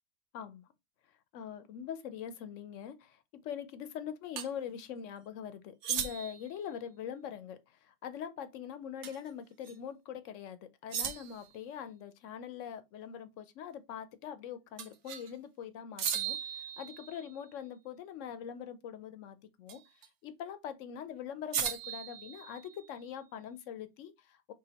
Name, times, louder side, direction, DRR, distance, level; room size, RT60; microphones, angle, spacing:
voice 1, 0.3-0.7 1.3-19.8 20.2-24.5, left 8 dB, 65° left, 0.9 m, -43 dB
sound 1, 4.4-4.5 5.8-6.5 9.0-9.3 9.6-9.7 10.9-11.5 14.8-15.3 16.0-17.4 19.7-20.1 21.5-22.9, right 8 dB, 60° right, 0.9 m, -37 dB
4.8 x 3.4 x 2.8 m
omnidirectional pair, 1.5 m